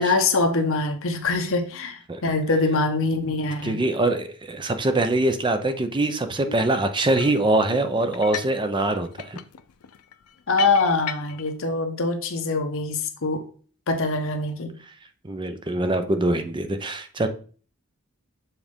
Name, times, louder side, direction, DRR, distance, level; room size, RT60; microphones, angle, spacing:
voice 1, 0.0-3.8 6.5-6.6 10.5-13.4 13.9-14.7, left 3 dB, 65° left, 6 dB, 1.0 m, -24 dB
voice 2, 3.6-9.4 15.2-17.3, right 2 dB, 20° right, 8 dB, 0.5 m, -23 dB
sound 1, 7.1-7.5 8.1-8.6 8.9-11.5, left 10 dB, 85° left, 0.5 m, -35 dB
7.1 x 3.9 x 3.6 m, 0.41 s
head